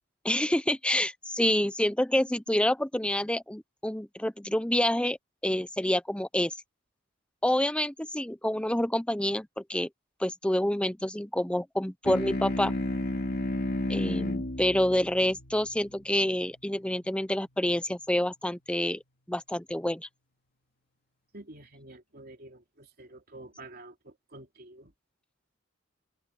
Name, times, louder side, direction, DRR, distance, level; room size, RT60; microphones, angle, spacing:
voice 1, 0.2-5.2 5.4-6.5 7.4-9.9 10.2-12.7 13.9-19.0 19.3-20.1, left 1 dB, 5° left, 0.8 m, -28 dB
sound 1, 12.0-16.9, left 1 dB, 50° left, 2.9 m, -33 dB
voice 2, 21.3-24.9, right 2 dB, 50° right, 3.2 m, -49 dB
head